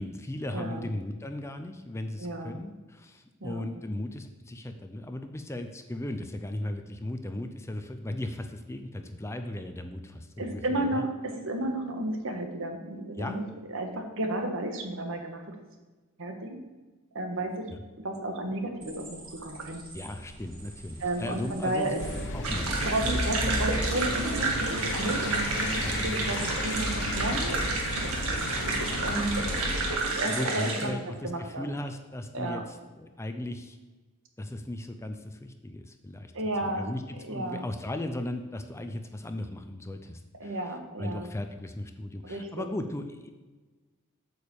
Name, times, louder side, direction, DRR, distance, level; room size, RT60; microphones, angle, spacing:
voice 1, 0.0-11.0 13.2-13.4 17.7-17.8 19.9-22.7 25.8-25.9 30.3-33.8 34.4-36.3 36.6-37.0 37.3-43.3, left 1 dB, 15° left, 7 dB, 0.5 m, -37 dB
voice 2, 0.5-0.8 2.2-2.5 3.4-3.6 10.4-13.4 13.7-15.6 16.2-16.6 17.1-17.6 18.0-19.8 21.0-22.0 22.8-27.5 28.9-29.5 30.0-31.0 31.2-31.7 32.3-32.6 36.3-36.9 37.2-37.7 40.4-41.3 42.2-42.7, right 1 dB, 65° right, 4 dB, 1.3 m, -32 dB
sound 1, 18.8-22.2, right 2 dB, 45° right, 2.7 m, -47 dB
sound 2, 22.0-30.0, left 1 dB, 55° left, 1.1 m, -33 dB
sound 3, 22.4-30.8, right 3 dB, 85° right, 1.9 m, -30 dB
8.4 x 4.9 x 7.0 m, 1.3 s
head